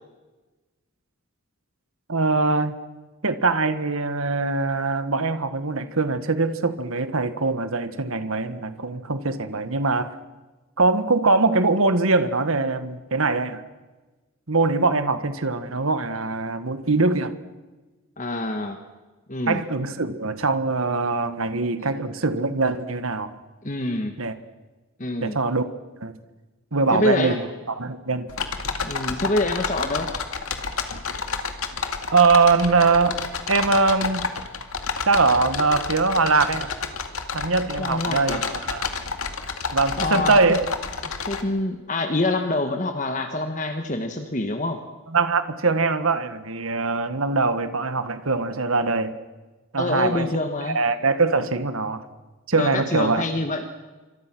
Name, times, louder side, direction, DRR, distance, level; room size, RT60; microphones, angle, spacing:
voice 1, 2.1-2.8 3.2-10.1 10.8-13.6 14.5-17.3 19.5-23.3 24.2-24.3 25.2-25.7 26.0-26.1 26.7-28.3 32.1-33.2 33.5-34.3 35.1-36.7 37.3-38.4 38.7-38.9 39.7-40.6 45.1-49.2 49.7-50.3 50.6-52.1 52.5-53.2, right 3 dB, 75° right, 10 dB, 1.6 m, -22 dB
voice 2, 18.2-18.8 19.3-19.6 23.6-24.1 25.0-25.4 26.9-27.4 28.8-30.1 37.8-38.4 39.9-40.4 41.0-44.8 49.8-50.8 52.6-53.7, left 2 dB, 35° left, 6 dB, 1.5 m, -26 dB
sound 1, 28.3-41.4, left 5 dB, 85° left, 2.2 m, -30 dB
27.5 x 25.0 x 6.2 m, 1.2 s
head